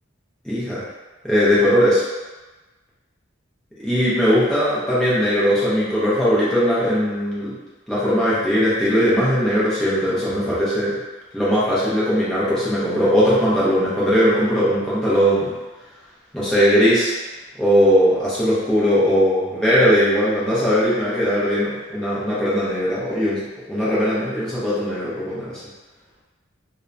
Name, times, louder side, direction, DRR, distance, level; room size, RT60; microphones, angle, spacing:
voice 1, 0.4-0.8 1.2-2.1 3.8-7.6 7.9-11.0 11.3-15.5 16.3-17.1 17.6-25.6, equal, 5° left, -10 dB, 0.5 m, -19 dB
2.6 x 2.0 x 2.3 m, 1.2 s
head